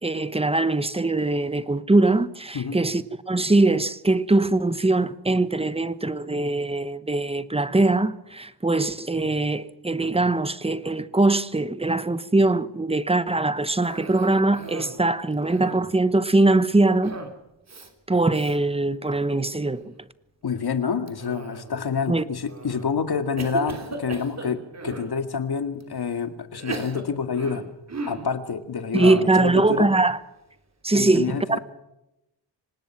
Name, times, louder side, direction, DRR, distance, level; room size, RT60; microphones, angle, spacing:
voice 1, 0.0-17.1 18.1-20.1 22.1-22.2 28.9-30.2 30.8-31.6, right 2 dB, 15° right, 1.0 m, -22 dB
Cough, 13.8-15.0 15.3-16.0 17.0-17.4 17.7-17.9 18.3-18.6 19.1-19.5 21.1-21.9 22.5-22.9 23.4-25.1 25.8-25.9 26.5-28.3 28.9-29.4, right 3 dB, 40° right, 3.1 m, -36 dB
voice 2, 20.4-27.6 28.0-29.9 30.9-31.6, left 6 dB, 60° left, 2.2 m, -28 dB
25.5 x 19.5 x 6.0 m
wide cardioid pair, 135°, 43 cm